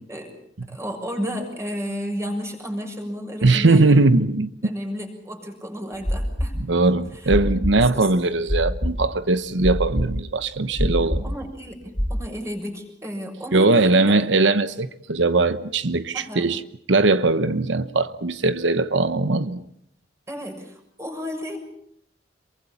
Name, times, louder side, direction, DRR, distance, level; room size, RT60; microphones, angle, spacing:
voice 1, 0.7-4.0 4.6-6.5 7.1-7.3 7.9-8.1 11.0-14.2 16.1-16.5 20.3-21.6, equal, 15° right, 6.7 m, -32 dB
voice 2, 3.4-4.5 6.7-11.2 13.5-16.6 16.9-19.6, right 3 dB, 85° right, 1.0 m, -20 dB
sound 1, 5.9-12.1, equal, 5° left, 4.2 m, -25 dB
27.5 x 23.5 x 7.1 m
head